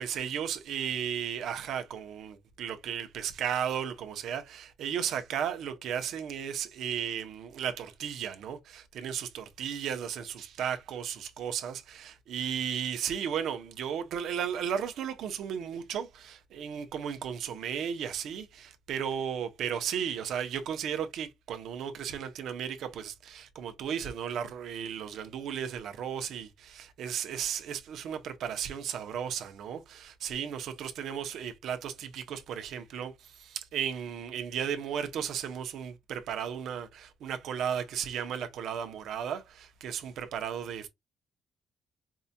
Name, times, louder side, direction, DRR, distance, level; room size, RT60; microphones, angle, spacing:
voice 1, 0.0-40.9, right 8 dB, 80° right, 0.7 m, -35 dB
4.6 x 2.7 x 2.2 m
cardioid pair, 90°, 0 cm